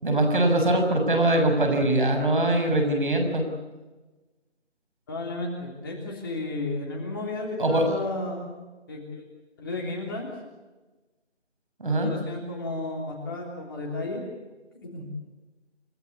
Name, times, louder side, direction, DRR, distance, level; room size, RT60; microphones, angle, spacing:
voice 1, 0.0-3.4 7.6-7.8 11.8-12.1, right 1 dB, 45° right, 4 dB, 7.0 m, -22 dB
voice 2, 5.1-8.6 8.9-9.2 9.6-10.3 11.9-14.2 14.8-15.0, left 2 dB, 20° left, -1 dB, 3.2 m, -33 dB
29.5 x 16.5 x 8.5 m, 1.2 s
figure-of-eight pair, 165°, 35 cm